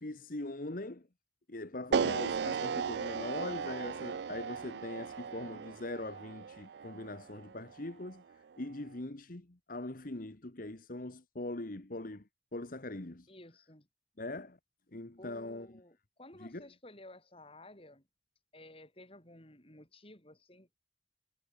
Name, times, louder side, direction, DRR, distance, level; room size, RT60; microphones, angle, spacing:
voice 1, 0.0-1.1 1.5-8.2 8.6-12.2 12.5-13.3 14.2-14.6 14.9-15.7 16.4-16.6, left 2 dB, 50° left, 1.4 m, -41 dB
sound 1, 1.9-8.1, right 6 dB, 65° right, 0.4 m, -36 dB
voice 2, 13.3-13.9 15.2-18.1 18.5-20.8, left 1 dB, 30° left, 7.2 m, -54 dB
head